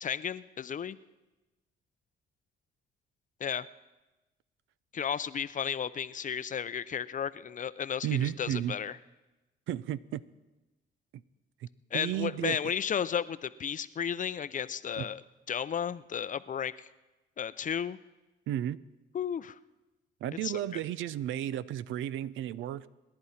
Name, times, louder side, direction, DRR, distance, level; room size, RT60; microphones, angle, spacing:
voice 1, 0.0-1.0 3.4-3.7 4.9-9.0 11.9-15.2 15.5-16.9 17.4-18.0 19.1-19.6 20.4-20.6, left 8 dB, 40° left, 15 dB, 0.5 m, -33 dB
voice 2, 8.0-8.7 9.7-10.2 11.1-11.2 11.6-11.7 11.9-12.7 15.0-15.1 18.5-18.8 20.2-22.9, right 12 dB, 80° right, 17 dB, 0.5 m, -33 dB
27.0 x 10.5 x 4.3 m, 1.1 s
cardioid pair, 90°, 20 cm